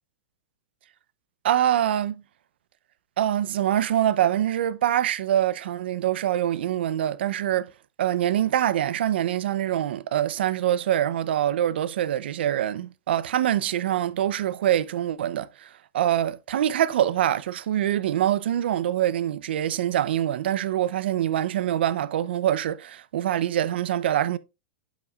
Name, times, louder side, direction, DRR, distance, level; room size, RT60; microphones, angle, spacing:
voice 1, 1.4-2.2 3.2-7.7 8.0-15.7 15.9-24.4, right 11 dB, 80° right, 0.5 m, -24 dB
8.2 x 7.2 x 2.3 m
supercardioid pair, 140°, 6 cm